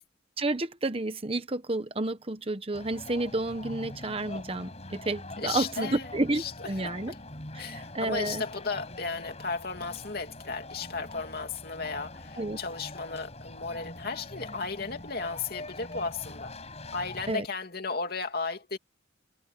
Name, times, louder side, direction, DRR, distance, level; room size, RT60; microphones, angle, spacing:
voice 1, 0.4-7.1 7.5-8.4 12.4-12.6 17.3-17.4, right 2 dB, 30° right, 1.0 m, -31 dB
sound 1, 2.7-17.3, left 2 dB, 35° left, 7.2 m, -44 dB
voice 2, 5.4-6.1 6.3-7.2 7.6-16.5 16.9-18.8, left 4 dB, 50° left, 2.8 m, -35 dB
head